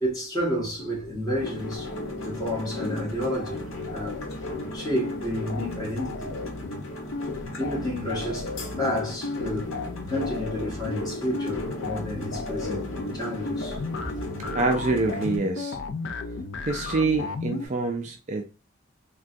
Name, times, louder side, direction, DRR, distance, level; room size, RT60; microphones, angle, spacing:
voice 1, 0.0-1.9 2.2-4.2 4.7-6.4 7.6-8.5 8.8-9.7 10.1-14.2, equal, 20° left, 1.3 m, -30 dB
sound 1, 0.8-2.6 2.9-17.7, left 3 dB, 60° left, 0.4 m, -35 dB
sound 2, 1.4-15.4, left 1 dB, 85° left, 0.9 m, -36 dB
voice 2, 14.5-15.8 16.6-18.5, right 3 dB, 35° right, 0.3 m, -26 dB
3.5 x 2.2 x 2.5 m
head